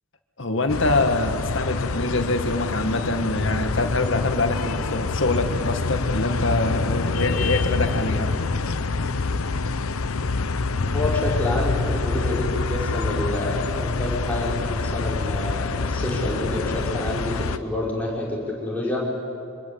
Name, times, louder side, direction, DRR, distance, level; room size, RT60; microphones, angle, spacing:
voice 1, 0.4-8.3, left 2 dB, 65° left, 6 dB, 2.0 m, -25 dB
sound 1, 0.7-17.6, left 3 dB, 90° left, 0.8 m, -26 dB
voice 2, 10.9-11.8 12.0-19.0, left 1 dB, 10° left, -5 dB, 5.4 m, -28 dB
25.5 x 24.5 x 8.4 m, 2.6 s
head